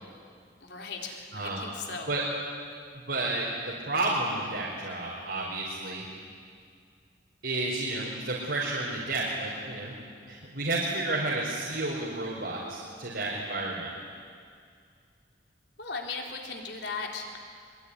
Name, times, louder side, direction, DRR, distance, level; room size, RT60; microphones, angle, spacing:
voice 1, 0.6-2.1 3.2-3.3 11.1-11.3 15.8-17.4, left 4 dB, 70° left, 1 dB, 3.9 m, -37 dB
voice 2, 3.1-6.0 7.4-9.9 10.3-13.9, right 2 dB, 70° right, -5 dB, 4.9 m, -31 dB
24.5 x 24.0 x 9.9 m, 2.2 s
head